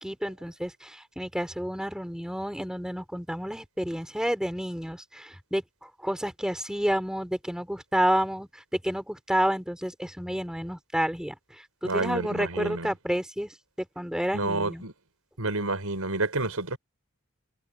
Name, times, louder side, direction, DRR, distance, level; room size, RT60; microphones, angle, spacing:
voice 1, 0.0-8.5 8.8-11.3 11.8-13.5 14.0-14.8, equal, 5° right, 3.8 m, -30 dB
voice 2, 11.8-12.9 14.3-14.9 15.4-16.8, right 2 dB, 75° right, 5.0 m, -29 dB
head